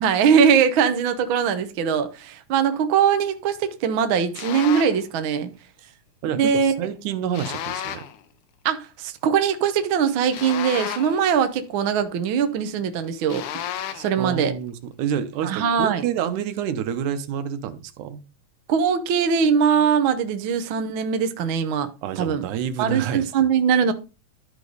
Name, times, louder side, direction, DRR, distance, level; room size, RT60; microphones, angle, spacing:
voice 1, 0.0-5.5 6.3-6.8 8.6-13.4 13.9-14.5 15.4-16.0 18.7-21.9 22.2-22.5 22.8-23.9, right 7 dB, 70° right, 1.2 m, -21 dB
sound 1, 4.3-5.0 7.3-8.2 10.3-11.3 13.3-14.2, left 10 dB, 85° left, 2.3 m, -32 dB
voice 2, 6.2-8.0 14.2-18.2 22.0-23.2, right 9 dB, 85° right, 2.4 m, -28 dB
12.0 x 5.0 x 4.0 m
omnidirectional pair, 3.4 m